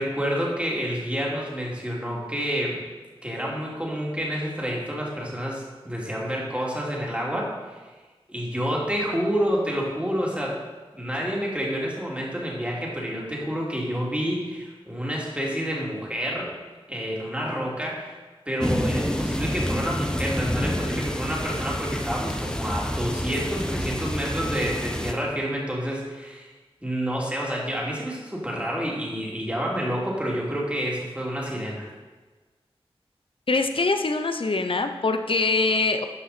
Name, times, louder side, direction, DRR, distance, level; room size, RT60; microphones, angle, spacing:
voice 1, 0.0-2.8 3.2-7.8 8.3-10.6 10.9-16.5 16.9-18.2 18.5-26.5 26.8-31.9, equal, 10° right, -4 dB, 2.8 m, -29 dB
sound 1, 18.6-25.1, equal, 5° left, 0.9 m, -28 dB
voice 2, 33.5-36.1, left 3 dB, 60° left, 7 dB, 0.8 m, -23 dB
11.5 x 5.7 x 4.3 m, 1.3 s
cardioid pair, 45°, 10 cm